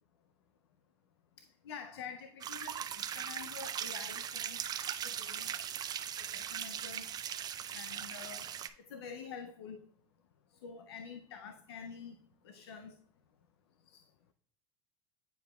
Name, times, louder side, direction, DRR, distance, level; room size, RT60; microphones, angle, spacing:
voice 1, 1.4-4.7 5.0-5.6 6.2-7.1 7.7-9.9 10.6-12.2 12.4-13.0 13.9-14.0, left 6 dB, 90° left, 0.5 m, -48 dB
sound 1, 2.4-8.7, right 9 dB, 30° right, 0.5 m, -39 dB
9.3 x 4.7 x 2.3 m
supercardioid pair, 105°, 13 cm